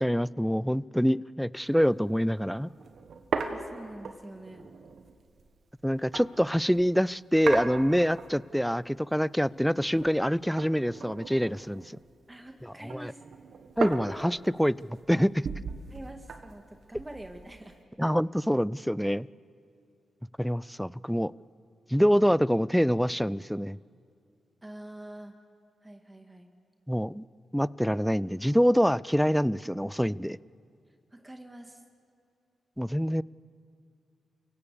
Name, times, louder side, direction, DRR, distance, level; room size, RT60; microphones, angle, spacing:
voice 1, 0.0-2.7 5.8-12.0 12.8-13.1 13.8-14.8 15.1-15.5 18.0-19.3 20.4-21.3 21.9-23.8 26.9-27.2 27.5-30.4 32.8-33.2, equal, ahead, 21 dB, 0.4 m, -25 dB
sound 1, 1.6-1.8 2.1-2.2 2.5-6.9 7.4-8.6 8.9-10.3 10.6-12.3 12.6-17.8, right 5 dB, 70° right, 1.6 m, -38 dB
voice 2, 3.5-4.7 12.3-13.2 15.9-17.8 24.6-25.3 25.8-26.5 31.1-31.8, right 1 dB, 20° right, 5 dB, 2.0 m, -45 dB
29.0 x 17.0 x 6.9 m, 2.4 s
supercardioid pair, 45°, 0 cm